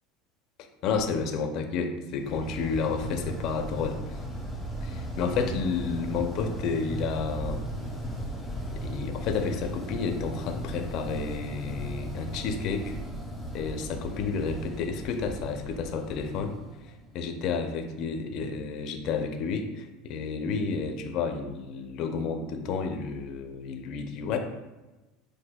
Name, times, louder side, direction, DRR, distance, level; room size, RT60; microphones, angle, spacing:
voice 1, 0.8-4.2 4.8-7.6 8.7-13.0 13.5-16.6 16.8-24.4, left 5 dB, 55° left, 5 dB, 0.4 m, -31 dB
Voice Wave, 2.2-17.2, equal, ahead, 0.6 m, -36 dB
5.7 x 2.5 x 2.2 m, 1.1 s
supercardioid pair, 125°, 0 cm